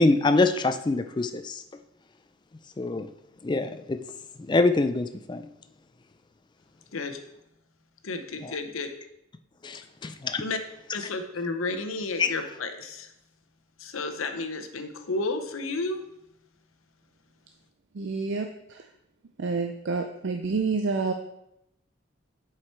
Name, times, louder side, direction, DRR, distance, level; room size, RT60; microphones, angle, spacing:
voice 1, 0.0-1.6 2.8-3.1 3.4-4.0 4.5-5.4 8.4-8.6 9.6-10.4 12.2-12.3, left 3 dB, 20° left, 8 dB, 0.3 m, -24 dB
voice 2, 8.0-8.9 10.4-10.6 10.9-13.1 13.8-16.0, left 3 dB, 85° left, 7 dB, 0.8 m, -32 dB
voice 3, 17.9-18.8 19.4-21.1, right 4 dB, 60° right, 5 dB, 0.4 m, -28 dB
7.4 x 4.8 x 4.5 m, 0.85 s
head